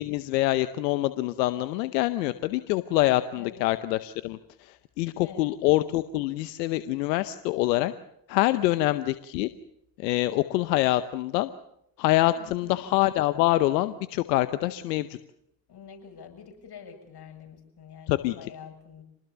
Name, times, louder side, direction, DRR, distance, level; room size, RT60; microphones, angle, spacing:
voice 1, 0.0-7.9 8.3-9.5 10.0-11.5 12.0-15.2 18.1-18.3, left 16 dB, 90° left, 13 dB, 0.9 m, -25 dB
voice 2, 5.2-5.6 8.6-9.0 12.3-12.9 15.7-19.0, left 7 dB, 50° left, 4 dB, 7.4 m, -47 dB
27.0 x 19.5 x 6.9 m, 0.78 s
hypercardioid pair, 55°, 48 cm